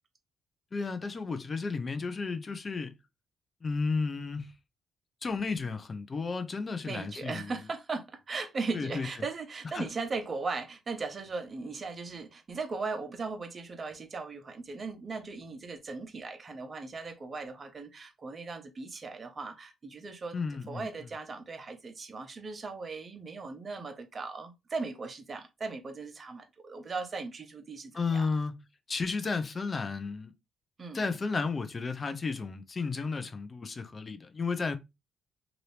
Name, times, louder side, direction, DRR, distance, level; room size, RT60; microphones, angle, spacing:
voice 1, 0.7-2.9 3.6-4.5 5.2-7.5 8.7-9.1 9.7-9.8 20.3-20.9 27.9-28.6 28.9-30.3 30.9-34.8, left 4 dB, 40° left, 0.6 m, -33 dB
voice 2, 6.8-20.4 20.7-28.3 30.8-31.1, right 4 dB, 40° right, 0.9 m, -38 dB
2.9 x 2.6 x 3.2 m
supercardioid pair, 65°, 0 cm